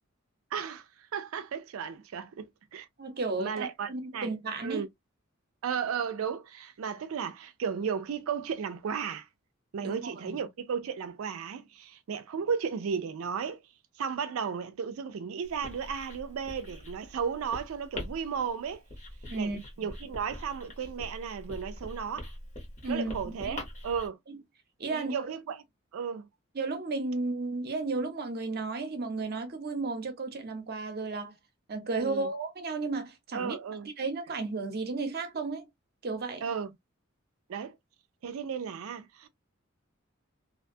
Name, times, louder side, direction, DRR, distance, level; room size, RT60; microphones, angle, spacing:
voice 1, 0.5-2.9 3.4-4.3 4.6-4.9 5.6-9.3 9.7-13.6 14.0-18.8 19.3-19.5 19.8-22.3 22.9-24.2 24.9-25.6 25.9-26.3 32.0-32.3 33.3-33.9 36.4-36.7 37.5-37.8 38.2-39.3, right 6 dB, 85° right, 0.4 m, -34 dB
voice 2, 3.0-4.8 9.8-10.3 19.3-19.9 22.8-23.6 24.3-24.4 24.8-25.3 26.5-31.3 31.7-33.6 34.0-35.7 36.0-36.4, right 3 dB, 50° right, 0.7 m, -33 dB
Writing, 15.4-24.1, left 1 dB, 35° left, 1.0 m, -43 dB
2.5 x 2.2 x 2.5 m
head